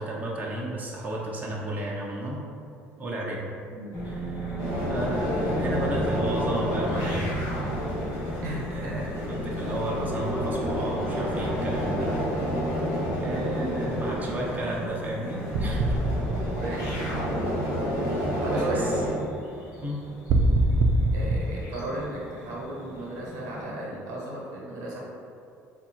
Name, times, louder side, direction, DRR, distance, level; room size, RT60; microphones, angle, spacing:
voice 1, 0.0-2.4 3.0-3.5 4.0-4.5 4.9-7.4 8.7-12.5 13.2-16.0 18.5-19.0 19.8-20.0, right 1 dB, 25° right, -4 dB, 0.7 m, -32 dB
sound 1, 3.9-23.6, left 1 dB, 60° left, 1.2 m, -37 dB
sound 2, 4.6-19.1, equal, 80° left, 1.3 m, -30 dB
voice 2, 8.4-9.1 13.0-13.2 16.6-17.2 18.4-18.9 21.1-25.0, right 1 dB, 75° right, -4 dB, 1.0 m, -36 dB
sound 3, 15.5-17.4 20.3-21.4, right 2 dB, 55° right, 0.3 m, -23 dB
3.4 x 2.4 x 4.4 m, 2.6 s
supercardioid pair, 85°, 6 cm